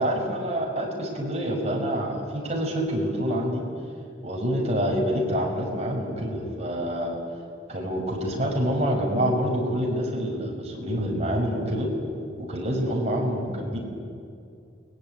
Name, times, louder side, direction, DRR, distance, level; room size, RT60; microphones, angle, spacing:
voice 1, 0.0-3.7 4.2-7.2 7.7-11.9 12.4-13.8, equal, 35° right, -1 dB, 6.0 m, -27 dB
29.5 x 20.5 x 9.3 m, 2.5 s
head